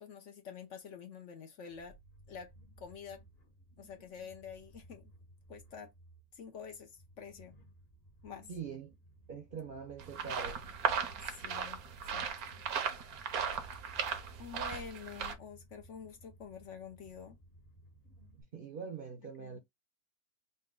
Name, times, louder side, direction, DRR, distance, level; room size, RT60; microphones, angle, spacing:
voice 1, 0.0-1.9 2.3-2.5 2.8-3.2 3.8-5.1 5.5-5.9 6.3-7.5 8.2-8.5 11.2-11.8 12.1-12.3 14.4-17.4 19.4-19.6, left 6 dB, 60° left, 0.9 m, -48 dB
sound 1, 1.7-18.4, right 1 dB, 30° left, 0.9 m, -60 dB
voice 2, 3.8-4.1 8.5-9.0 9.3-10.6 18.1-19.6, right 6 dB, 50° right, 0.7 m, -44 dB
sound 2, 10.0-15.3, right 7 dB, 75° right, 1.2 m, -37 dB
4.0 x 2.2 x 3.7 m
omnidirectional pair, 1.6 m